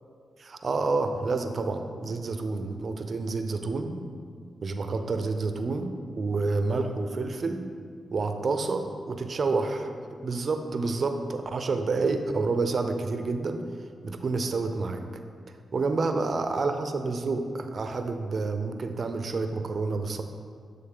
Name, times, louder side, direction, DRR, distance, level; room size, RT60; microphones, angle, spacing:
voice 1, 0.4-4.0 4.6-7.7 8.1-13.7 14.0-15.0 15.7-20.2, right 3 dB, 55° right, 7 dB, 0.5 m, -29 dB
8.6 x 3.6 x 3.7 m, 2.1 s
supercardioid pair, 50°, 0 cm